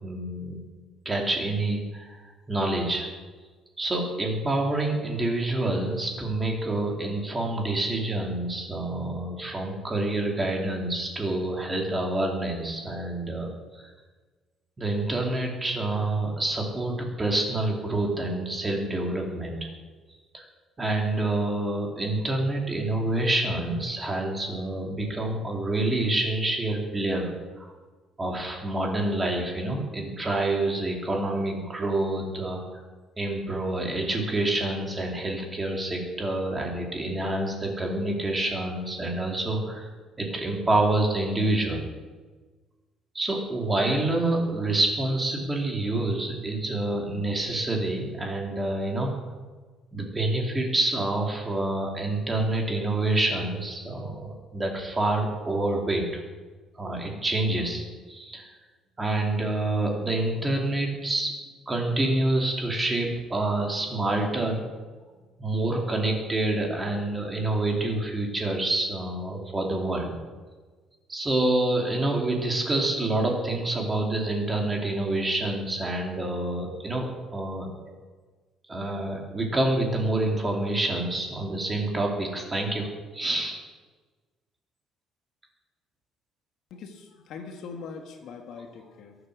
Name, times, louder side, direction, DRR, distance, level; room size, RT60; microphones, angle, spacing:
voice 1, 0.0-0.6 1.0-3.1 3.8-13.5 13.7-13.8 14.8-19.7 20.3-20.4 20.8-27.7 28.2-32.6 33.2-39.9 40.2-41.8 43.1-49.1 49.9-56.0 56.8-58.5 59.0-61.3 61.7-64.7 65.4-70.1 71.1-77.7 78.7-82.9 83.1-83.6, right 2 dB, 15° right, 1 dB, 2.5 m, -27 dB
voice 2, 86.7-89.2, left 5 dB, 55° left, 4 dB, 1.8 m, -41 dB
22.0 x 8.0 x 6.3 m, 1.3 s
cardioid pair, 170°, 0 cm